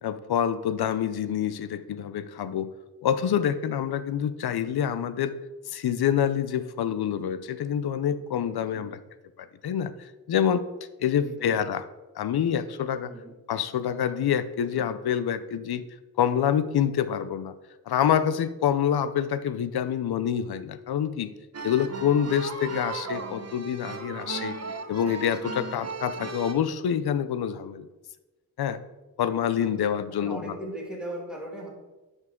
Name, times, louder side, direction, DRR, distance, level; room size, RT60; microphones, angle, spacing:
voice 1, 0.0-2.7 3.0-5.3 5.7-9.0 9.4-10.6 11.0-11.8 12.2-13.1 13.5-15.8 16.2-17.5 17.9-21.3 21.6-24.6 24.9-27.9 28.6-28.8 29.2-30.5, left 9 dB, 75° left, 13 dB, 0.6 m, -26 dB
voice 2, 11.0-11.5 13.1-13.3 29.6-29.7 30.1-31.7, right 1 dB, ahead, -3 dB, 2.4 m, -38 dB
sound 1, 21.5-26.5, right 4 dB, 40° right, 0.9 m, -36 dB
9.3 x 5.5 x 3.8 m, 1.1 s
wide cardioid pair, 90°, 39 cm